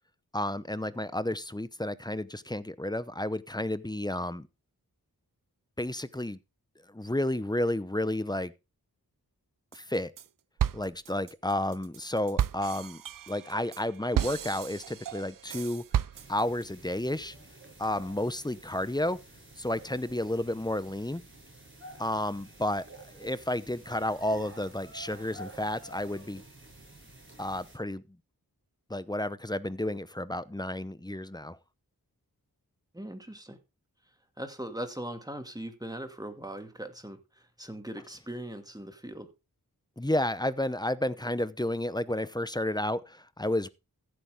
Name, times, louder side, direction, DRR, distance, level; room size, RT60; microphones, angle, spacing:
voice 1, 0.3-4.5 5.8-6.4 6.9-8.5 9.7-10.1 10.7-13.0 13.3-15.8 16.3-17.3 17.8-19.2 19.6-21.2 22.0-26.4 27.4-28.0 28.9-31.6 40.0-43.7, left 1 dB, 10° left, 0.9 m, -31 dB
sound 1, 9.7-10.3 10.6-16.6, right 10 dB, 60° right, 0.5 m, -33 dB
sound 2, 16.1-27.8, right 1 dB, 30° right, 7.0 m, -50 dB
voice 2, 32.9-33.6 34.4-39.3, right 1 dB, 10° right, 2.4 m, -40 dB
15.0 x 8.1 x 3.7 m
wide cardioid pair, 50°, 38 cm